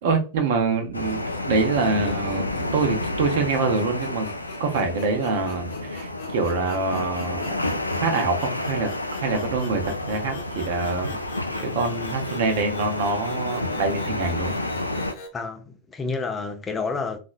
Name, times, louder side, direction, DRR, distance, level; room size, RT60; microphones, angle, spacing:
voice 1, 0.0-2.4 2.7-4.3 4.6-8.9 9.2-9.8 10.1-11.2 11.6-14.5, right 4 dB, 55° right, 0.8 m, -25 dB
sound 1, 0.9-15.1, left 2 dB, 85° left, 0.4 m, -30 dB
sound 2, 0.9-15.3, left 5 dB, 50° left, 0.8 m, -44 dB
voice 2, 15.3-17.2, left 4 dB, 20° left, 0.5 m, -29 dB
4.0 x 2.5 x 2.3 m
figure-of-eight pair, 90°, 0 cm